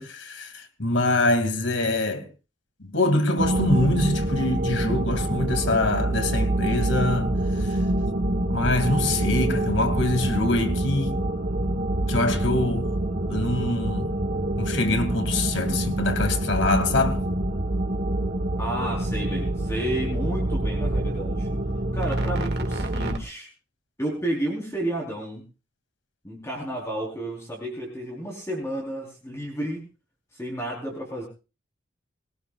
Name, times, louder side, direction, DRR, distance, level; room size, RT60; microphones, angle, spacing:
voice 1, 0.0-2.3 2.8-7.3 7.6-7.8 8.5-11.2 12.1-12.9 13.3-14.1 14.6-17.2, left 2 dB, 80° left, 2.7 m, -24 dB
sound 1, 3.4-23.2, right 1 dB, 60° right, 2.1 m, -26 dB
voice 2, 18.6-21.5 21.9-23.5 24.0-25.4 26.2-29.8 30.3-31.3, right 1 dB, 15° left, 4.2 m, -31 dB
21.5 x 18.5 x 2.5 m
head